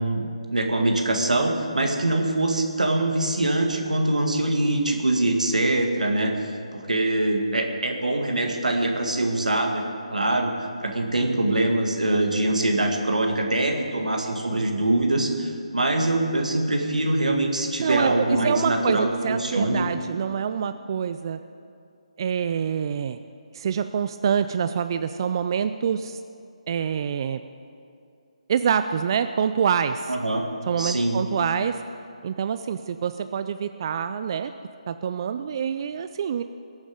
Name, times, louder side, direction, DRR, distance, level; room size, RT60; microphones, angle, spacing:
voice 1, 0.0-6.3 6.7-9.8 10.1-10.6 10.8-19.9 30.1-30.4 30.8-31.2, right 2 dB, 85° right, 3 dB, 1.9 m, -23 dB
voice 2, 17.8-21.4 22.2-23.2 23.5-26.2 26.7-27.4 28.5-30.1 30.7-31.8 32.2-34.5 34.9-36.4, right 7 dB, 40° right, 10 dB, 0.3 m, -26 dB
21.0 x 7.2 x 5.1 m, 2.5 s
figure-of-eight pair, 155°, 4 cm